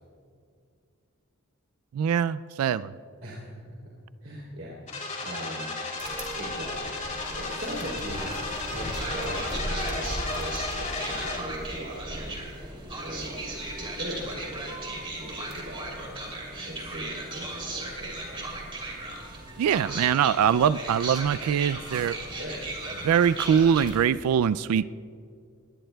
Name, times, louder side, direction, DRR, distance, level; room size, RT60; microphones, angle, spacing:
voice 1, 1.9-2.9 19.6-22.2 23.0-24.9, right 8 dB, 85° right, 16 dB, 0.3 m, -23 dB
voice 2, 3.2-3.6 4.2-5.7 6.4-12.7 13.0-16.2 16.6-18.6 22.4-22.6 22.9-23.1, equal, 55° right, -5 dB, 3.4 m, -40 dB
sound 1, 4.9-11.4, left 3 dB, 35° left, 3.5 m, -34 dB
sound 2, 6.0-24.0, right 2 dB, 25° right, 2.8 m, -36 dB
21.5 x 18.0 x 2.3 m, 2.3 s
head